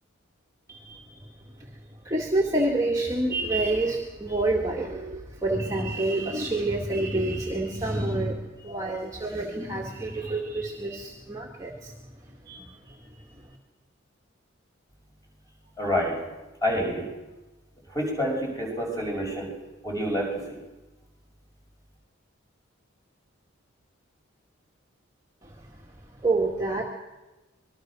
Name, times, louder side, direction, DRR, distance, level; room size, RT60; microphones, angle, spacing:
voice 1, 0.7-1.3 2.0-11.9 12.5-13.0 25.4-25.5 26.2-26.8, right 2 dB, 15° right, -2 dB, 2.1 m, -28 dB
voice 2, 15.8-16.1 16.6-17.1 17.9-19.5 19.8-20.6, equal, 15° left, -1 dB, 6.3 m, -28 dB
26.0 x 21.0 x 6.3 m, 1.1 s
head